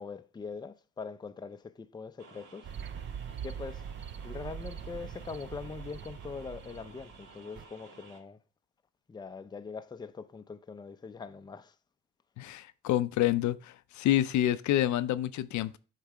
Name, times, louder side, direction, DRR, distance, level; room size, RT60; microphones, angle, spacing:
voice 1, 0.0-2.7 3.4-3.8 4.2-8.4 9.1-11.8, left 5 dB, 15° left, 0.5 m, -42 dB
sound 1, 2.2-8.2, right 4 dB, 80° right, 1.6 m, -54 dB
sound 2, 2.6-7.6, right 8 dB, 40° right, 0.4 m, -42 dB
voice 2, 12.4-15.8, left 13 dB, 70° left, 0.5 m, -28 dB
8.0 x 3.3 x 4.8 m
cardioid pair, 90°, 30 cm